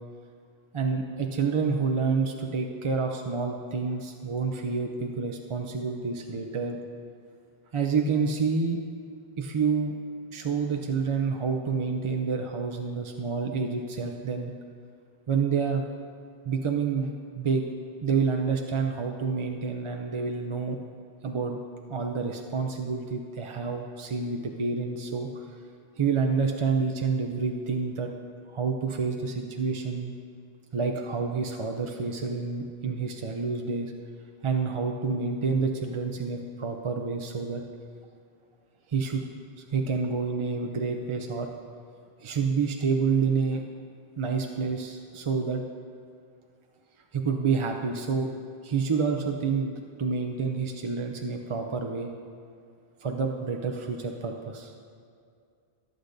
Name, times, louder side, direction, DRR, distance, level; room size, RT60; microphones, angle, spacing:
voice 1, 0.7-6.8 7.7-8.8 9.4-10.0 10.3-14.5 15.3-15.8 16.4-17.6 18.0-20.8 21.2-21.6 21.9-25.4 26.0-28.1 28.5-30.1 30.7-33.9 34.4-37.6 38.9-39.3 39.6-41.5 42.2-43.6 44.2-45.6 47.1-48.3 48.6-52.1 53.0-54.7, right 5 dB, 40° right, 3 dB, 0.5 m, -28 dB
20.0 x 8.0 x 2.6 m, 2.3 s
omnidirectional pair, 1.0 m